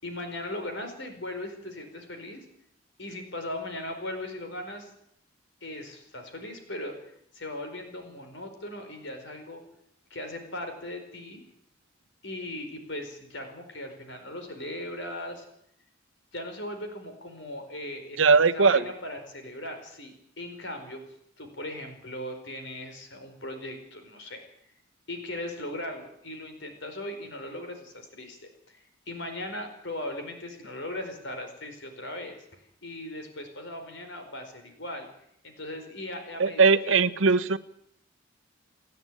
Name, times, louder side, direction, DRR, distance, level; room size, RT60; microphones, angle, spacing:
voice 1, 0.0-2.4 3.0-4.9 5.6-9.6 10.1-11.4 12.2-15.4 16.3-21.0 21.4-24.5 25.1-28.4 28.7-35.1 35.4-37.3, left 1 dB, 70° left, 6 dB, 4.6 m, -38 dB
voice 2, 18.2-18.9 36.4-37.6, right 4 dB, 85° right, 11 dB, 0.9 m, -20 dB
29.5 x 10.5 x 9.1 m, 0.74 s
head